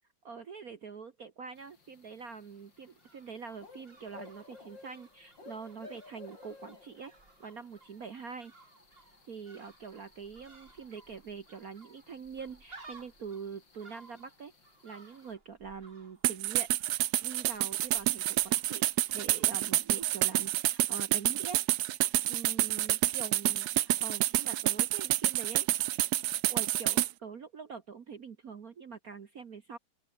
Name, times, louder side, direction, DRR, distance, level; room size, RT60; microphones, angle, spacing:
voice 1, 0.2-7.1 7.4-8.5 9.3-14.5 14.8-16.7 17.2-18.8 19.1-21.6 22.3-25.7 26.5-29.8, right 6 dB, 45° right, 1.6 m, -44 dB
sound 1, 1.5-15.3, left 4 dB, 60° left, 4.3 m, -57 dB
sound 2, 2.6-20.7 21.0-21.1, right 3 dB, 25° right, 3.2 m, -59 dB
sound 3, 16.2-27.1, right 14 dB, 70° right, 0.9 m, -28 dB
open air
omnidirectional pair, 2.3 m